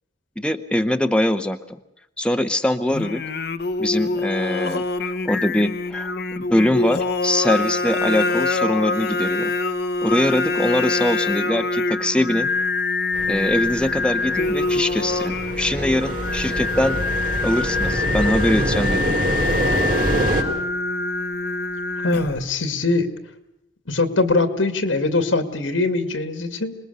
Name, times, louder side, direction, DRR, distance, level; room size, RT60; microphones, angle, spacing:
voice 1, 0.4-1.8 2.2-3.2 3.8-9.5 10.0-12.5 13.3-17.0 17.4-19.0, left 1 dB, 5° left, 7 dB, 0.8 m, -22 dB
Singing, 2.9-22.5, left 3 dB, 55° left, 0.9 m, -25 dB
sound 1, 13.1-20.4, right 1 dB, 45° right, 3.7 m, -25 dB
voice 2, 22.0-23.1 23.9-26.8, left 3 dB, 90° left, 9 dB, 2.3 m, -22 dB
26.0 x 20.5 x 6.8 m, 0.85 s
head